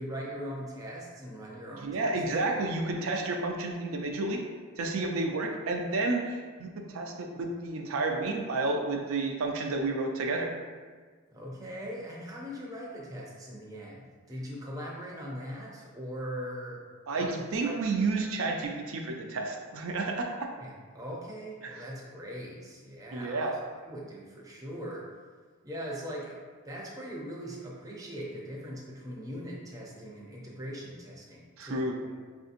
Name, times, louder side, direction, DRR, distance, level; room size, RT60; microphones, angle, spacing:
voice 1, 0.0-2.2 11.3-16.8 17.1-17.8 20.6-23.5 23.8-25.1 25.6-32.1, equal, 15° right, -3 dB, 0.5 m, -40 dB
voice 2, 1.8-4.4 4.8-10.5 17.1-20.5 23.1-23.5 31.6-32.0, right 3 dB, 65° right, 2 dB, 0.4 m, -31 dB
5.6 x 2.7 x 2.5 m, 1.5 s
head